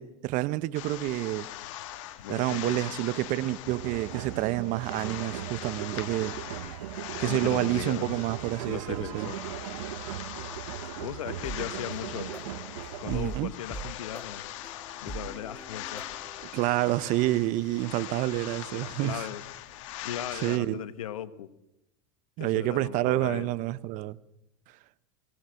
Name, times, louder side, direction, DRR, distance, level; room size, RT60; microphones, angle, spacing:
voice 1, 0.0-1.5 2.3-6.3 7.2-9.3 13.1-13.5 16.5-19.3 20.3-20.8 22.4-24.2, right 17 dB, 50° right, 0.9 m, -28 dB
sound 1, 0.7-20.6, left 13 dB, 70° left, 1.8 m, -41 dB
voice 2, 2.2-3.1 7.2-8.2 8.7-9.4 11.0-12.3 13.0-14.4 15.0-16.1 18.7-19.4 20.0-21.5 22.4-23.5, left 10 dB, 90° left, 1.3 m, -37 dB
sound 2, 3.6-13.2, right 13 dB, 80° right, 0.9 m, -39 dB
sound 3, 11.4-16.4, right 3 dB, 10° left, 1.9 m, -42 dB
22.0 x 18.5 x 6.4 m
supercardioid pair, 115°, 17 cm